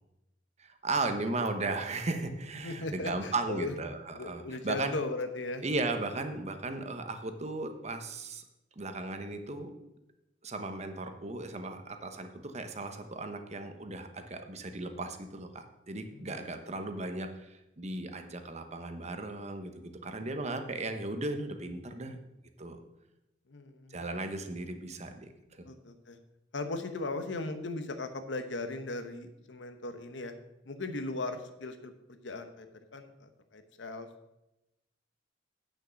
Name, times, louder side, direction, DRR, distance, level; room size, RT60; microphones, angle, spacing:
voice 1, 0.6-4.9 5.6-8.4 8.8-9.7 10.4-22.2 22.6-22.8 23.9-25.7, right 2 dB, 40° right, 7 dB, 0.9 m, -36 dB
voice 2, 2.6-3.7 4.1-5.6 16.1-16.4 20.2-20.3 23.5-24.0 25.7-26.2 26.5-30.3 30.6-32.7 32.9-34.1, left 2 dB, 80° left, 8 dB, 1.0 m, -38 dB
8.5 x 6.5 x 6.3 m, 0.93 s
head